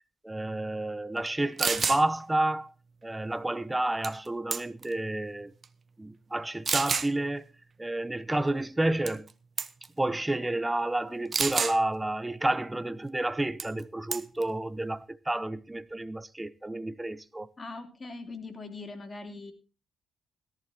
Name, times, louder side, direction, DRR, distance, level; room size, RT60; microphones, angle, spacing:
voice 1, 0.2-2.7 3.0-5.5 6.0-7.5 7.8-9.3 10.0-17.5, right 1 dB, 10° right, 0.9 m, -30 dB
sound 1, 1.3-1.4 1.6-2.0 4.0-4.3 4.5-4.9 5.6-5.7 6.6-7.1 9.1-9.3 9.6-9.9 11.3-11.8 13.6-13.8 14.1-14.4, right 5 dB, 40° right, 1.0 m, -28 dB
voice 2, 17.6-19.5, left 3 dB, 30° left, 3.3 m, -41 dB
17.5 x 14.0 x 2.9 m
cardioid pair, 90°, 0 cm